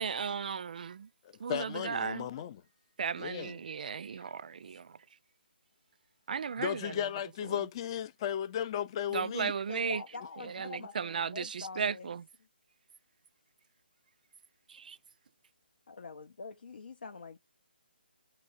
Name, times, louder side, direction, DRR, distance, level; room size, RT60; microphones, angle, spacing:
voice 1, 0.0-1.1 1.4-2.3 3.0-4.9 6.3-6.9 9.1-10.0 10.6-12.2 14.7-15.0, right 6 dB, 55° right, 0.4 m, -35 dB
voice 2, 1.2-2.6 3.2-3.6 6.6-9.6, left 10 dB, 30° left, 0.4 m, -35 dB
voice 3, 9.7-12.1 15.9-17.4, left 4 dB, 65° left, 0.7 m, -45 dB
6.3 x 2.8 x 2.5 m
figure-of-eight pair, 150°, 6 cm